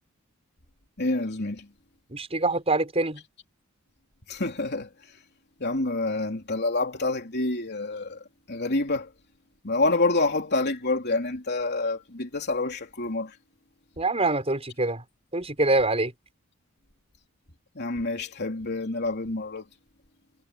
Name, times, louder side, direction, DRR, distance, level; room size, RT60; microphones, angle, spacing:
voice 1, 1.0-1.7 4.3-4.9 5.6-8.2 8.5-9.1 9.6-13.3 17.8-19.7, left 2 dB, 50° left, 3.5 m, -27 dB
voice 2, 2.1-3.2 14.0-15.0 15.3-16.1, right 2 dB, 30° right, 6.3 m, -25 dB
head